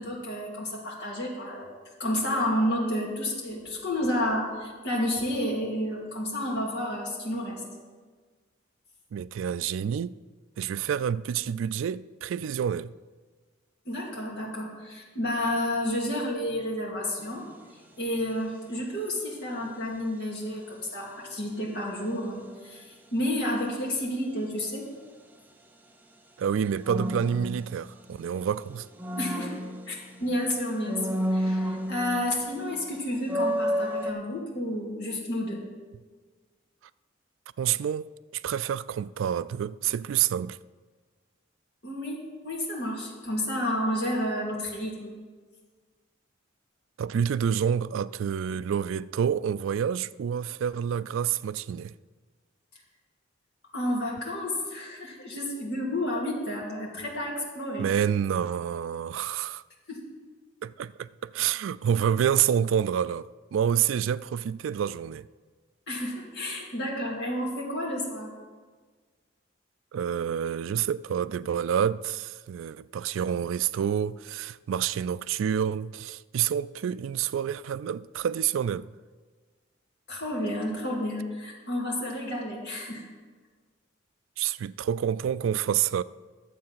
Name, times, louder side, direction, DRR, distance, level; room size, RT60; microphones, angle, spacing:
voice 1, 0.0-1.7 2.0-7.6 13.8-17.5 18.0-24.9 29.2-29.6 29.9-35.6 41.8-45.1 53.7-57.9 59.9-60.1 65.9-68.3 80.1-83.1, left 1 dB, 55° left, 2.7 m, -31 dB
voice 2, 9.1-10.2 10.6-12.9 26.4-28.9 37.6-40.6 47.0-51.9 57.8-59.6 60.6-65.3 69.9-78.9 84.4-86.0, right 8 dB, 75° right, 0.3 m, -28 dB
sound 1, 17.2-17.5 26.8-28.3 28.7-30.3 30.8-32.4 32.7-32.8 33.2-34.1, equal, 10° right, 0.6 m, -30 dB
12.0 x 7.5 x 5.7 m
head